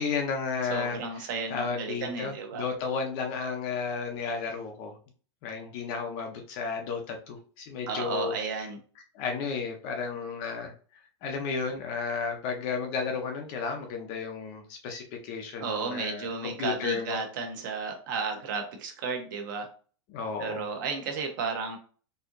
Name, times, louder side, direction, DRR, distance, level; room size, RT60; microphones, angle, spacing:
voice 1, 0.0-5.0 5.4-8.7 9.1-10.7 11.2-17.2 20.1-20.7, left 5 dB, 25° left, 3 dB, 0.5 m, -33 dB
voice 2, 0.7-2.6 7.9-8.8 15.6-19.7 20.4-21.8, right 5 dB, 45° right, 3 dB, 0.9 m, -33 dB
4.3 x 2.8 x 2.5 m, 0.41 s
supercardioid pair, 180°, 14 cm